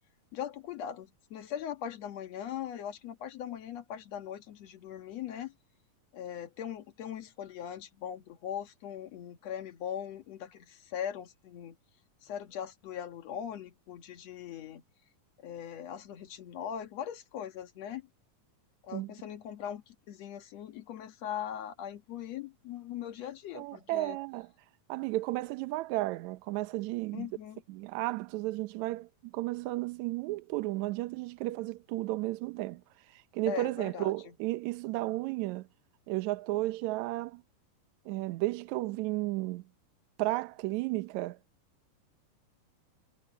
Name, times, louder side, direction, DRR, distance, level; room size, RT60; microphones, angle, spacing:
voice 1, 0.3-5.5 6.1-11.8 12.2-14.8 15.4-18.1 18.8-24.2 27.1-27.6 33.5-34.3, left 9 dB, 55° left, 2.3 m, -40 dB
voice 2, 23.5-24.5 24.9-27.3 27.7-32.8 33.3-35.7 36.1-37.4 38.1-39.6 40.2-41.4, right 19 dB, 75° right, 1.8 m, -33 dB
omnidirectional pair, 4.1 m